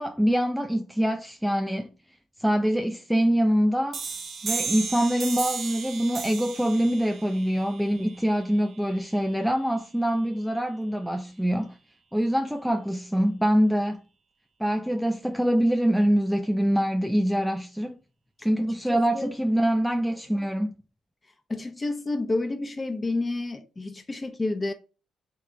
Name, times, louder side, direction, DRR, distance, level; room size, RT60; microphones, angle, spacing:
voice 1, 0.0-1.9 2.4-4.0 4.4-11.8 12.1-14.0 14.6-18.0 18.4-20.7, equal, ahead, 0.4 m, -24 dB
sound 1, 3.9-9.3, right 5 dB, 50° right, 1.0 m, -35 dB
voice 2, 18.4-19.3 21.5-24.7, left 2 dB, 25° left, 0.9 m, -30 dB
3.3 x 3.3 x 3.7 m
cardioid pair, 90°, 0 cm